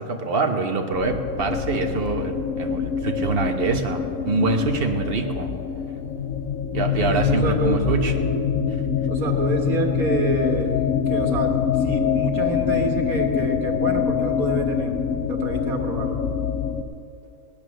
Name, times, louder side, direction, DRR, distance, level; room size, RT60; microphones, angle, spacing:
voice 1, 0.0-5.5 6.7-8.1, right 3 dB, 45° right, 4 dB, 1.3 m, -25 dB
sound 1, 0.9-16.8, left 7 dB, 80° left, 1.2 m, -25 dB
voice 2, 7.0-8.0 9.1-15.0 15.3-16.2, right 2 dB, 90° right, 3 dB, 2.1 m, -27 dB
18.0 x 10.5 x 6.4 m, 2.5 s
omnidirectional pair, 1.5 m